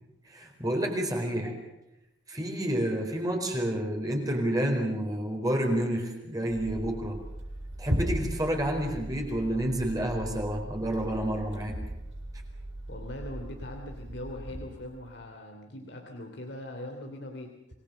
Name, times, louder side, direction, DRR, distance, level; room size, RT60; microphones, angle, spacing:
voice 1, 0.3-1.5 2.3-7.2 7.8-11.7, right 1 dB, 20° right, 2 dB, 4.4 m, -29 dB
sound 1, 6.5-15.2, right 1 dB, 80° right, 7.9 m, -37 dB
voice 2, 12.9-17.5, left 1 dB, 60° left, 2 dB, 2.9 m, -41 dB
27.0 x 20.5 x 6.9 m, 0.90 s
head